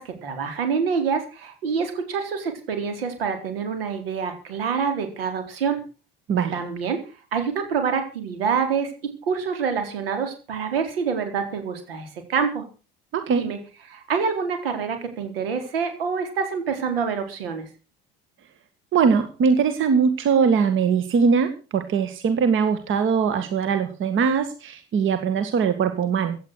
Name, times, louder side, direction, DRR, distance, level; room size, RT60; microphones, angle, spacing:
voice 1, 0.0-5.8 6.5-7.0 7.3-8.9 9.2-12.7 13.3-13.6 13.9-17.7, right 6 dB, 75° right, 6 dB, 4.3 m, -26 dB
voice 2, 13.1-13.5 18.9-26.4, right 6 dB, 40° right, 10 dB, 2.0 m, -21 dB
16.5 x 10.0 x 6.4 m, 0.35 s
figure-of-eight pair, 65°, 30 cm